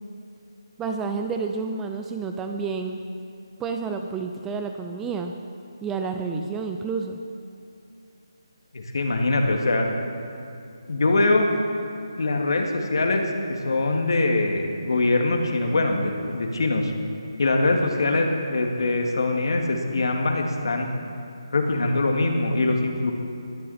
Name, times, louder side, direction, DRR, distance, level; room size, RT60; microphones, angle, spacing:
voice 1, 0.8-3.0 3.6-5.3 5.8-7.2, right 5 dB, 10° right, 5 dB, 0.4 m, -29 dB
voice 2, 8.7-9.9 10.9-11.5 12.2-16.9 17.4-20.9 21.5-23.1, left 2 dB, 65° left, 2 dB, 2.2 m, -23 dB
20.0 x 12.0 x 4.3 m, 2.6 s
hypercardioid pair, 165°, 3 cm